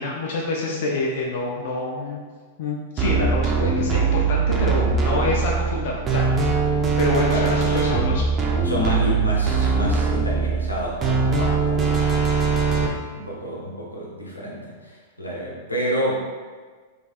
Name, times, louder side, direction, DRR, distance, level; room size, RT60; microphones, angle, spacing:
voice 1, 0.0-2.2 2.6-6.7 7.0-8.2, left 2 dB, 50° left, -2 dB, 0.4 m, -27 dB
sound 1, 3.0-12.9, right 5 dB, 25° right, 0.5 m, -21 dB
voice 2, 7.3-7.9 8.6-12.4 12.7-16.2, equal, 85° left, -4 dB, 0.7 m, -29 dB
3.2 x 3.2 x 2.4 m, 1.5 s
figure-of-eight pair, 95°, 0 cm